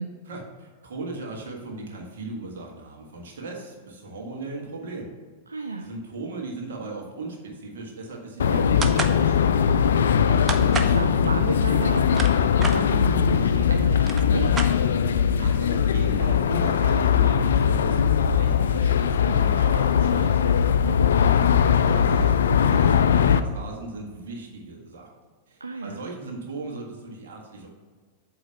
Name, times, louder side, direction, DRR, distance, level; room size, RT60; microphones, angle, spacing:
voice 1, 0.3-5.1 5.8-9.7 15.4-18.0 18.4-20.4 21.2-25.1 25.5-27.7, right 3 dB, 60° right, 0 dB, 1.6 m, -37 dB
voice 2, 5.5-5.9 10.0-14.6 20.8-21.1 25.6-26.0, right 3 dB, 80° right, 4 dB, 0.4 m, -33 dB
sound 1, 8.4-23.4, left 7 dB, 65° left, 0.3 m, -20 dB
sound 2, 8.8-9.2 10.5-11.0 11.9-12.8 13.6-13.7 13.9-15.1, right 4 dB, 20° right, 0.6 m, -30 dB
8.1 x 3.2 x 5.6 m, 1.5 s
figure-of-eight pair, 95°, 0 cm